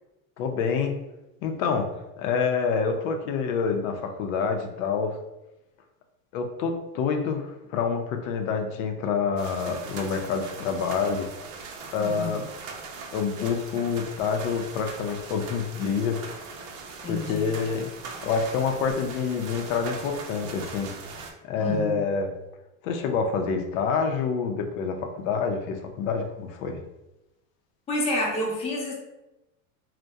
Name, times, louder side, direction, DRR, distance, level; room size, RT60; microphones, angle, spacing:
voice 1, 0.4-0.9 1.4-1.9 2.2-5.2 6.3-11.3 11.9-12.5 13.1-16.2 17.1-17.9 18.2-20.9 21.4-22.3 22.8-26.8, left 5 dB, 75° left, 5 dB, 0.5 m, -27 dB
sound 1, 9.4-21.3, right 4 dB, 75° right, 0.6 m, -40 dB
voice 2, 12.0-12.3 17.0-17.6 21.6-22.0 27.9-28.9, left 1 dB, 15° left, -4 dB, 0.5 m, -29 dB
2.6 x 2.1 x 2.2 m, 0.95 s
supercardioid pair, 140°, 40 cm